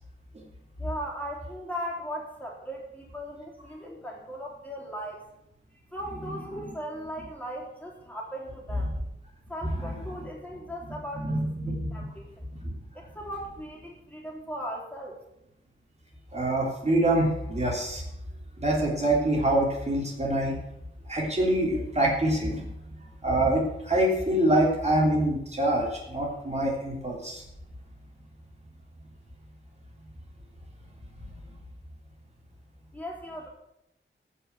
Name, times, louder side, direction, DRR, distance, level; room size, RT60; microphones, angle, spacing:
voice 1, 0.8-5.3 5.9-8.9 9.5-12.5 13.1-15.2 32.9-33.5, equal, 5° left, -2 dB, 3.7 m, -38 dB
voice 2, 9.8-10.3 11.2-12.0 12.6-12.7 16.3-18.0 18.6-20.5 21.1-22.6 23.2-27.4, right 1 dB, 35° right, -2 dB, 3.2 m, -25 dB
15.5 x 5.7 x 8.0 m, 0.83 s
wide cardioid pair, 95°, 20 cm